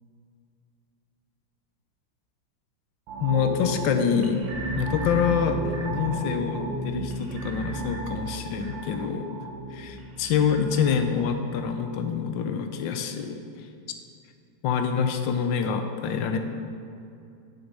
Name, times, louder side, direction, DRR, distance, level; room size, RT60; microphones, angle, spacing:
sound 1, 3.1-12.4 12.7-12.9, right 3 dB, 75° right, 1.7 m, -34 dB
voice 1, 3.2-4.4 4.7-9.2 9.7-13.4 14.6-16.4, left 7 dB, 75° left, 6 dB, 1.3 m, -26 dB
7.0 x 6.5 x 5.4 m, 2.5 s
omnidirectional pair, 2.2 m